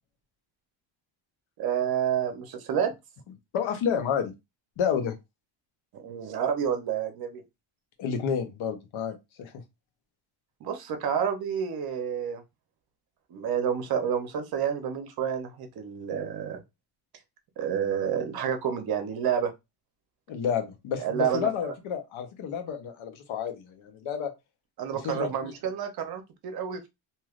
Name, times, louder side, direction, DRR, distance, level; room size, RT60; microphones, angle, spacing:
voice 1, 1.6-2.9 5.9-7.4 10.6-12.4 13.3-16.6 17.6-19.5 21.0-21.5 24.8-26.9, right 8 dB, 50° right, 0.7 m, -29 dB
voice 2, 3.5-4.3 4.8-5.2 8.0-9.5 20.3-24.3 24.9-25.3, left 7 dB, 80° left, 0.9 m, -30 dB
3.2 x 2.8 x 2.4 m
cardioid pair, 175°, 48 cm